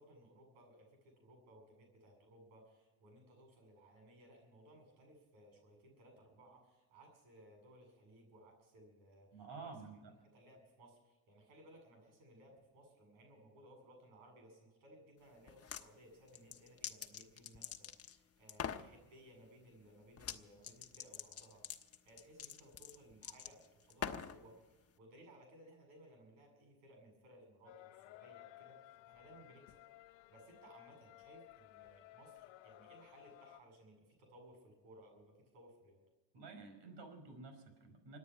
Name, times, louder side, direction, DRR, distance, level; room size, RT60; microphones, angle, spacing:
voice 1, 0.0-9.9 10.3-36.0, right 1 dB, 80° right, 3 dB, 7.8 m, -61 dB
voice 2, 9.3-10.1 36.3-38.2, right 4 dB, 60° right, 7 dB, 5.2 m, -51 dB
sound 1, 15.5-15.9 16.3-18.2 18.5-18.9 20.2-20.4 20.6-24.4, left 8 dB, 30° left, 1.1 m, -44 dB
sound 2, 27.7-33.6, left 17 dB, 75° left, 0.8 m, -58 dB
25.0 x 9.6 x 5.9 m, 1.2 s
cardioid pair, 105°, 46 cm